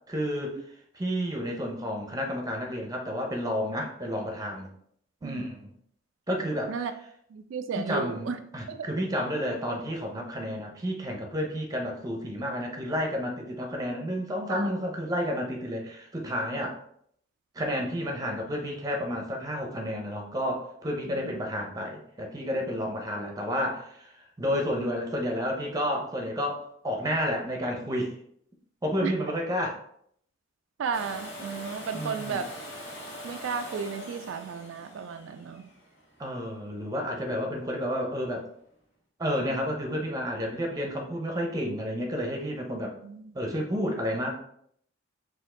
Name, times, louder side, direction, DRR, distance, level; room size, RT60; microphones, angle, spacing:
voice 1, 0.1-0.6 0.9-4.7 5.2-5.7 6.3-6.9 7.7-16.7 17.5-24.1 24.4-28.1 28.8-29.8 31.9-32.4 36.2-38.4 39.2-42.9 43.3-44.4, equal, 20° right, 2 dB, 0.7 m, -31 dB
voice 2, 7.3-8.4 8.7-8.8 14.5-14.7 21.2-21.3 29.0-29.1 30.8-32.5 33.2-35.7 43.0-43.3, right 6 dB, 80° right, 8 dB, 0.3 m, -34 dB
Domestic sounds home sounds, 30.9-36.7 38.7-38.8, equal, 85° left, 1.2 m, -43 dB
4.4 x 2.6 x 3.7 m, 0.68 s
head